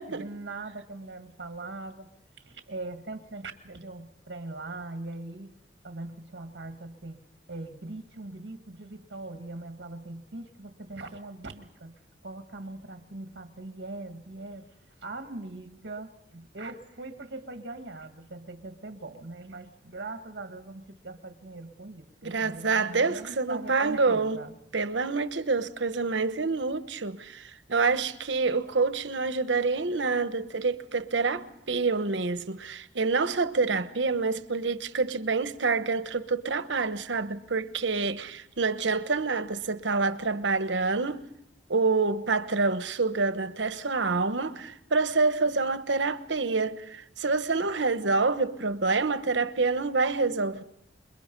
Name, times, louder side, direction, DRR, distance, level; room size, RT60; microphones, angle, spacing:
voice 1, 0.1-2.1 2.4-5.5 5.8-7.2 7.5-11.9 12.2-14.7 15.0-24.5, right 2 dB, 65° right, 1.7 m, -41 dB
voice 2, 22.2-24.4 24.7-41.2 41.7-50.6, right 4 dB, 85° right, 1.1 m, -27 dB
28.5 x 22.0 x 5.3 m
head